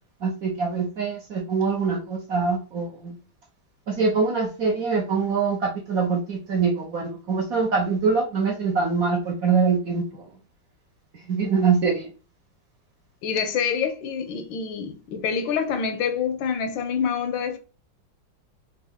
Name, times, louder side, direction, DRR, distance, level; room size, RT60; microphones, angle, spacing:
voice 1, 0.2-3.2 3.9-10.3 11.3-12.1, right 5 dB, 60° right, 1.0 m, -24 dB
voice 2, 13.2-17.6, left 7 dB, 80° left, 1.3 m, -26 dB
4.3 x 2.4 x 3.5 m
omnidirectional pair, 2.2 m